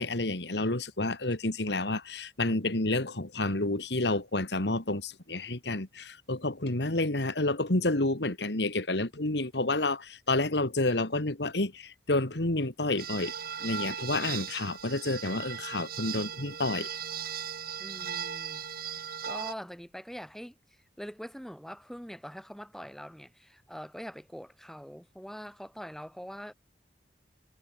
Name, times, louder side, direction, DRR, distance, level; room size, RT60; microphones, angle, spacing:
voice 1, 0.0-13.3 13.6-16.9, left 2 dB, 70° left, 2.3 m, -29 dB
sound 1, 13.0-19.5, right 8 dB, 55° right, 2.2 m, -38 dB
voice 2, 17.8-20.6 21.0-26.5, equal, ahead, 5.5 m, -44 dB
head